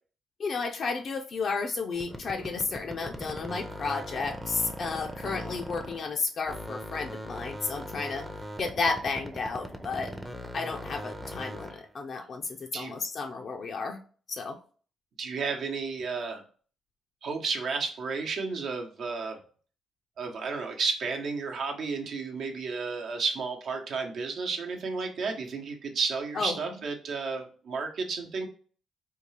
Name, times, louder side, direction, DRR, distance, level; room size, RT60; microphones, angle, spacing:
voice 1, 0.4-8.2 8.6-10.1 10.5-14.0 14.3-14.6 26.4-26.6, left 4 dB, 50° left, 3 dB, 0.4 m, -32 dB
sound 1, 2.0-6.2 6.5-11.9, equal, 5° right, 0.6 m, -40 dB
voice 2, 15.2-16.4 17.2-19.4 20.2-28.5, right 4 dB, 65° right, 2 dB, 0.8 m, -32 dB
3.6 x 2.3 x 3.1 m, 0.42 s
cardioid pair, 90°, 0 cm